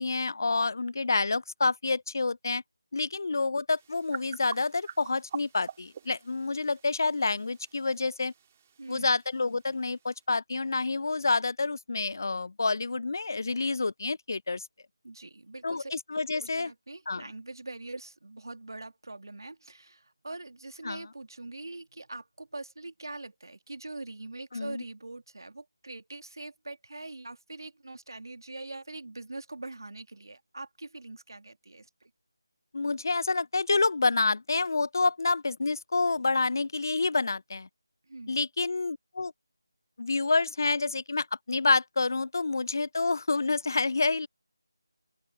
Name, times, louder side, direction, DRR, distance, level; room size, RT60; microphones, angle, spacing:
voice 1, 0.0-2.6 2.9-8.3 8.9-14.6 15.6-16.7 17.1-17.2 20.8-21.0 24.5-24.8 32.7-37.7 38.3-39.3 40.0-44.3, left 3 dB, 50° left, 0.5 m, -28 dB
sound 1, 3.7-10.3, right 8 dB, 25° right, 1.8 m, -46 dB
voice 2, 8.8-9.1 15.0-15.9 16.4-32.1 38.1-38.4, right 2 dB, 65° right, 2.1 m, -43 dB
open air
figure-of-eight pair, 160°, 2 cm